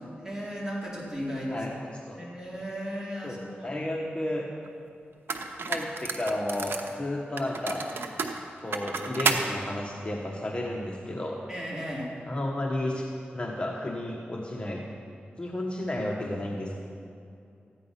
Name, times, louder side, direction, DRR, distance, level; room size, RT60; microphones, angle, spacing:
voice 1, 0.0-1.6 2.1-3.9 11.5-12.1, equal, 15° right, -5 dB, 3.9 m, -36 dB
voice 2, 1.5-2.2 3.2-4.5 5.7-7.9 8.6-11.4 12.3-13.1 13.3-14.8 15.4-16.7, left 1 dB, 30° left, -1 dB, 1.2 m, -32 dB
sound 1, 4.7-4.8 5.3-6.9 7.4-9.5, right 4 dB, 75° right, 0.9 m, -31 dB
14.0 x 9.8 x 5.7 m, 2.5 s
cardioid pair, 70°, 4 cm